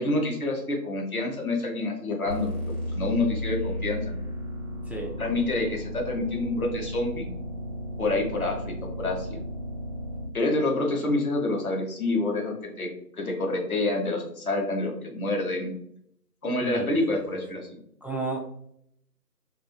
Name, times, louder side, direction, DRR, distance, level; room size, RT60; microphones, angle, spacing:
voice 1, 0.0-2.5 2.9-4.2 5.2-7.2 8.0-9.4 10.3-12.9 13.2-15.7 16.4-17.7, left 2 dB, 60° left, 0 dB, 0.9 m, -27 dB
sound 1, 2.2-10.3, left 1 dB, 30° left, 1.1 m, -34 dB
voice 2, 16.6-17.2 18.0-18.4, right 3 dB, 5° right, 0 dB, 0.3 m, -33 dB
2.8 x 2.4 x 2.2 m, 0.72 s
figure-of-eight pair, 170°, 49 cm